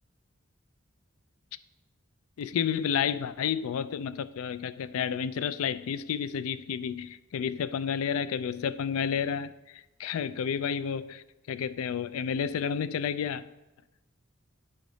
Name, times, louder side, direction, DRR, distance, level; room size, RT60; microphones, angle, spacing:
voice 1, 2.4-13.4, left 7 dB, 85° left, 15 dB, 0.3 m, -31 dB
8.8 x 4.0 x 4.9 m, 1.0 s
head